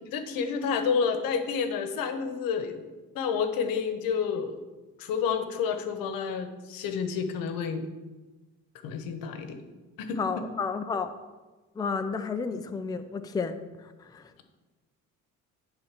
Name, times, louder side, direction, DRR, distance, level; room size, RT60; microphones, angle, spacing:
voice 1, 0.0-2.8 3.1-4.5 5.0-7.8 8.8-9.6 10.0-10.4 12.5-12.6, left 6 dB, 80° left, 8 dB, 1.0 m, -29 dB
voice 2, 10.2-11.1 11.8-13.5 13.8-14.4, left 5 dB, 10° left, 9 dB, 0.4 m, -32 dB
9.6 x 3.8 x 5.9 m, 1.2 s
cardioid pair, 110°, 34 cm